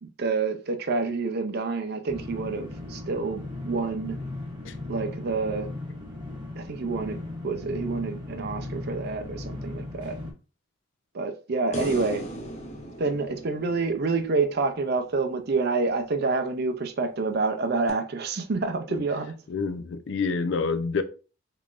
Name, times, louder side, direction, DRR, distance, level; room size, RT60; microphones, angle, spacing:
voice 1, 0.0-4.2 4.9-5.7 6.6-7.2 7.4-10.2 11.1-12.2 13.0-19.3, right 3 dB, 50° right, 0.5 m, -28 dB
sound 1, 2.1-10.3, left 2 dB, 20° right, 0.8 m, -37 dB
sound 2, 11.7-15.1 17.9-18.0, right 1 dB, 35° left, 0.7 m, -37 dB
voice 2, 19.5-21.0, left 4 dB, 60° left, 0.4 m, -27 dB
3.7 x 3.3 x 2.4 m
head